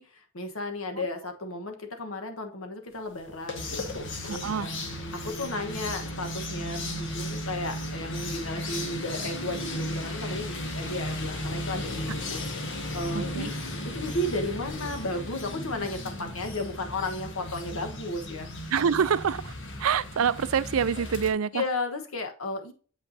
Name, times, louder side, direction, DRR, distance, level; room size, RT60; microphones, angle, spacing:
voice 1, 0.0-4.7 5.1-13.5 13.9-18.7 21.5-22.7, left 2 dB, 85° left, 1.3 m, -34 dB
sound 1, 3.2-21.3, left 1 dB, 60° left, 1.4 m, -35 dB
voice 2, 4.2-4.7 13.1-13.5 18.7-19.5 19.8-21.6, right 7 dB, 90° right, 0.5 m, -26 dB
8.1 x 5.4 x 2.8 m
head